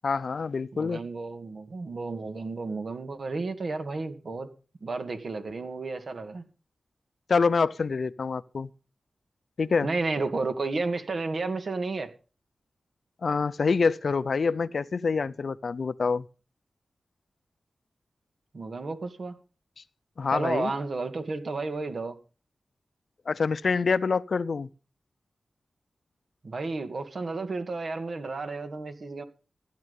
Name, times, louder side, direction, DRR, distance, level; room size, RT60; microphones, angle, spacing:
voice 1, 0.0-1.0 7.3-8.7 9.6-9.9 13.2-16.3 19.8-19.9 20.2-20.7 23.3-24.7, left 4 dB, 70° left, 0.7 m, -26 dB
voice 2, 0.7-4.5 4.8-6.4 9.8-12.1 18.5-19.4 20.3-22.2 26.4-29.2, right 3 dB, 65° right, 2.2 m, -32 dB
15.5 x 10.5 x 5.5 m
cardioid pair, 55°, 0 cm